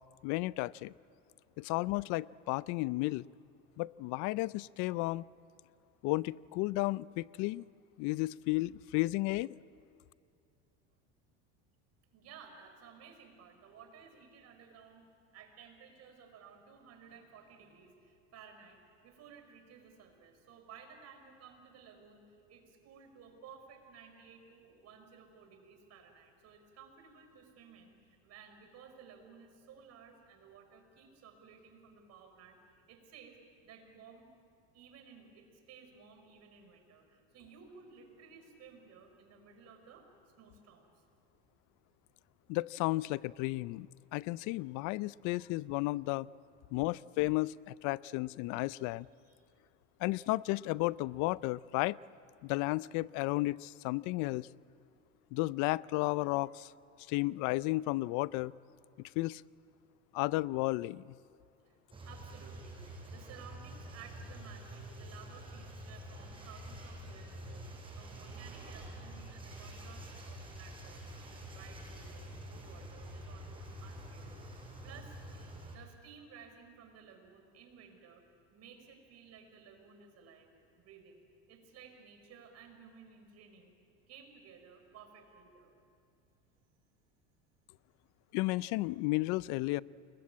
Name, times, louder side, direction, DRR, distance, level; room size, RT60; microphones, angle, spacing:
voice 1, 0.2-0.9 1.6-3.2 3.8-5.2 6.0-7.6 8.0-9.5 42.5-43.9 44.1-46.3 46.7-49.1 50.0-52.0 52.4-54.5 55.3-56.7 57.1-58.5 59.2-59.4 60.1-61.1 88.3-89.8, left 20 dB, 60° left, 21 dB, 0.6 m, -33 dB
voice 2, 12.1-15.1 15.3-34.3 34.7-40.1 40.4-41.0 46.6-46.7 49.2-49.4 61.7-61.8 62.1-67.7 68.0-75.2 75.7-78.2 78.5-80.5 80.8-81.2 81.5-83.7 84.1-85.7, right 6 dB, 50° right, 5 dB, 5.5 m, -56 dB
sound 1, 61.9-75.8, right 1 dB, 15° right, 6.0 m, -47 dB
29.5 x 21.5 x 8.6 m, 2.4 s
supercardioid pair, 115°, 34 cm